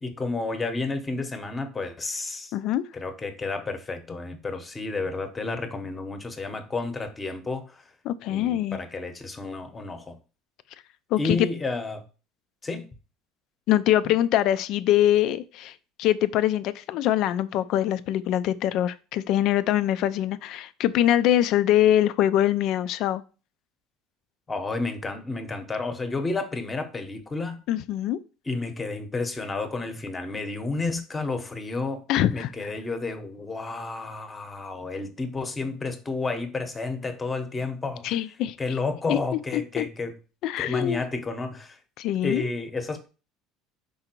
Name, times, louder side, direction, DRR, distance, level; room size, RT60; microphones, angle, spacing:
voice 1, 0.0-2.5 2.9-7.9 8.3-10.2 11.2-12.0 12.6-12.9 24.5-27.6 28.5-38.2 38.6-40.1 40.6-41.8 42.2-43.1, left 3 dB, 15° left, 1.0 m, -31 dB
voice 2, 2.5-2.8 8.0-8.8 11.1-11.5 13.7-23.2 27.7-28.2 32.1-32.7 38.0-38.6 39.1-39.2 39.5-39.8 40.4-41.0 42.0-42.5, left 12 dB, 55° left, 0.5 m, -23 dB
5.5 x 3.9 x 4.5 m
cardioid pair, 135°, 0 cm